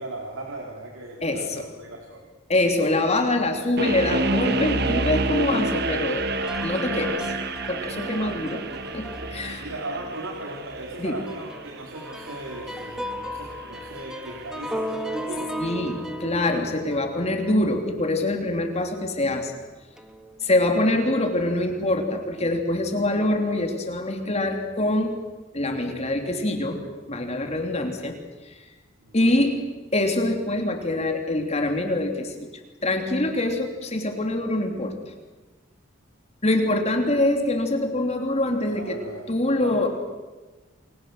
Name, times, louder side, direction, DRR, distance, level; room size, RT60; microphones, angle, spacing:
voice 1, 0.0-2.3 8.2-8.4 9.2-15.6 29.0-29.4 38.7-39.3 39.6-39.9, right 1 dB, 85° right, 0 dB, 4.0 m, -38 dB
voice 2, 1.2-1.7 2.5-6.3 6.6-7.4 7.7-8.6 8.9-9.6 11.0-11.2 15.6-19.5 20.4-25.2 25.5-28.2 29.1-29.6 29.9-32.3 32.8-35.0 36.4-39.0 39.3-39.9, left 1 dB, 35° left, 4 dB, 3.3 m, -24 dB
sound 1, 3.8-14.8, right 2 dB, 55° right, 1.6 m, -29 dB
sound 2, 6.4-10.0 10.5-10.7 11.0-18.9 19.2-19.4 20.0-20.4 20.8-21.6, equal, 5° right, 1.9 m, -36 dB
29.5 x 22.0 x 8.0 m, 1.2 s
head